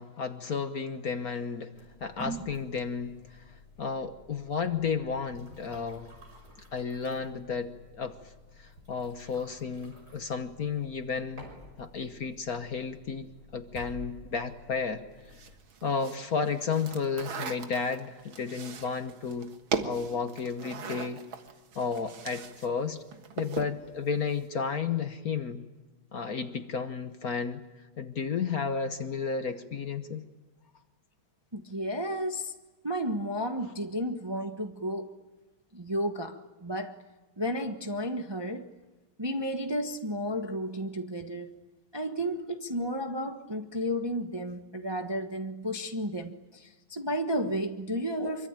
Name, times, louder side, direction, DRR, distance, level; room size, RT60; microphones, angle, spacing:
voice 1, 0.0-1.7 2.0-3.4 3.8-6.1 6.7-8.2 8.6-11.4 11.8-15.0 15.8-19.5 19.8-21.2 21.7-23.0 23.4-25.6 26.1-27.6 28.0-30.3, left 5 dB, 50° left, 1.4 m, -32 dB
sound 1, 1.7-15.5, right 1 dB, 45° right, 6.2 m, -49 dB
sound 2, 15.3-22.7 23.0-23.8, right 6 dB, 70° right, 2.3 m, -38 dB
voice 2, 31.5-32.5 32.8-35.1 35.7-37.0 37.4-38.7 39.2-41.5 41.9-48.5, equal, 15° right, 0.9 m, -32 dB
25.5 x 24.0 x 9.0 m
omnidirectional pair, 2.3 m